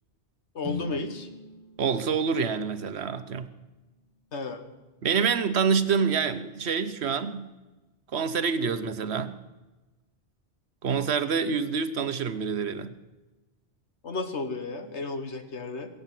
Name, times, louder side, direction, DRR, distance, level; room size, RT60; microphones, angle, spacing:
voice 1, 0.6-1.3 4.3-4.6 14.0-15.9, left 3 dB, 75° left, 7 dB, 1.8 m, -33 dB
sound 1, 0.6-4.7, left 3 dB, 20° right, 3.0 m, -42 dB
voice 2, 1.8-3.5 5.0-7.5 8.1-9.4 10.8-12.9, right 6 dB, 70° right, 12 dB, 1.1 m, -27 dB
22.0 x 8.2 x 7.6 m, 1.1 s
omnidirectional pair, 1.2 m